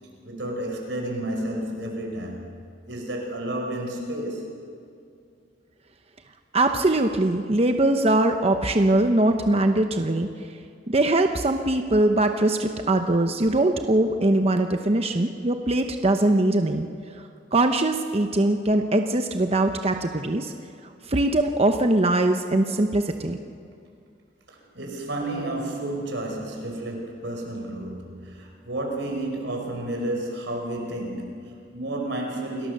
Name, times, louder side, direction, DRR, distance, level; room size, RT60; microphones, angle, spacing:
voice 1, 0.2-2.6 2.9-4.6 24.5-32.7, right 1 dB, 75° right, 1 dB, 5.0 m, -31 dB
voice 2, 6.5-10.3 10.9-16.9 17.5-20.5 21.1-23.4, right 2 dB, 35° right, 6 dB, 0.9 m, -21 dB
28.5 x 18.5 x 6.7 m, 2.5 s
head